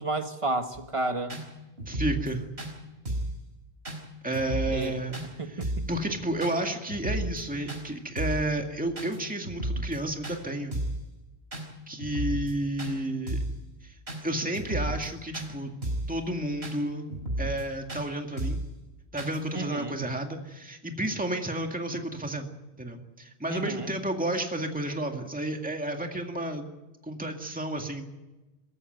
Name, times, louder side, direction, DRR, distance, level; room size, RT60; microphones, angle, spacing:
voice 1, 0.0-1.3 4.7-5.0 5.4-5.7 19.5-19.9 23.5-23.9, right 2 dB, 30° right, 7 dB, 1.6 m, -31 dB
sound 1, 0.7-0.8 1.3-1.4 1.8-2.3 2.6-2.7 3.1-3.4 3.9-4.0 4.3-4.9 5.1-5.3 5.6-5.9 6.4-6.6 6.9-7.4 7.7-7.8 8.2-8.5 9.0-9.2 9.4-10.0 10.2-10.4 10.7-11.0 11.5-11.7 12.0-12.5 12.8-12.9 13.3-13.6 14.1-14.2 14.5-15.1 15.3-15.5 15.8-16.1 16.6-16.8 17.1-17.6 17.9-18.0 18.4-18.7 19.2-19.4, right 1 dB, 70° right, 5.0 m, -32 dB
voice 2, 1.9-2.4 4.2-10.8 11.9-13.4 13.8-15.7 16.1-17.1 17.4-18.6 19.1-22.5 22.8-26.7 27.0-28.1, right 1 dB, 10° right, 3 dB, 2.1 m, -31 dB
23.5 x 13.5 x 9.3 m, 1.1 s
omnidirectional pair, 1.1 m